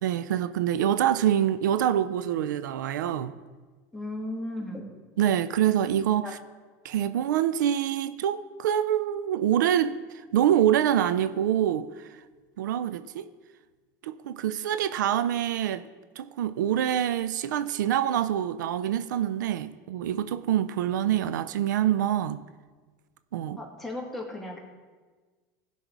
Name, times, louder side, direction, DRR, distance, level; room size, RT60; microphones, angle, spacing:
voice 1, 0.0-3.4 5.2-6.4 6.8-10.0 10.3-12.1 12.6-13.3 14.0-15.8 16.2-22.4 23.3-23.6, right 10 dB, 90° right, 0.4 m, -25 dB
voice 2, 3.9-4.8 6.2-6.3 23.6-24.6, left 1 dB, ahead, 2.3 m, -35 dB
15.5 x 5.5 x 4.7 m
supercardioid pair, 105°, 10 cm